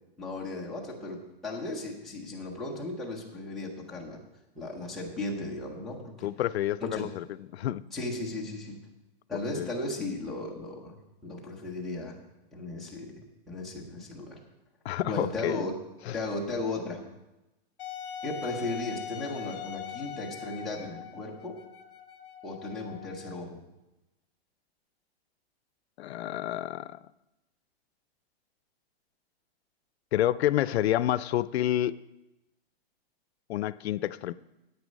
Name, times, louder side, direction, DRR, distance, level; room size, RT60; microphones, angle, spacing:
voice 1, 0.2-4.2 4.6-6.3 6.8-7.1 7.9-8.8 9.3-11.0 11.2-12.2 12.5-13.1 13.5-14.4 15.0-15.8 16.1-17.0 18.2-21.6 22.4-23.6, left 2 dB, ahead, 0.7 m, -36 dB
voice 2, 6.2-7.2 7.5-7.8 9.5-9.7 14.8-15.7 16.1-16.2 26.0-27.0 30.1-32.0 33.5-34.3, left 13 dB, 90° left, 0.5 m, -28 dB
Wind instrument woodwind instrument, 17.8-23.4, left 9 dB, 60° left, 1.0 m, -41 dB
9.6 x 8.4 x 5.2 m
supercardioid pair, 180°, 31 cm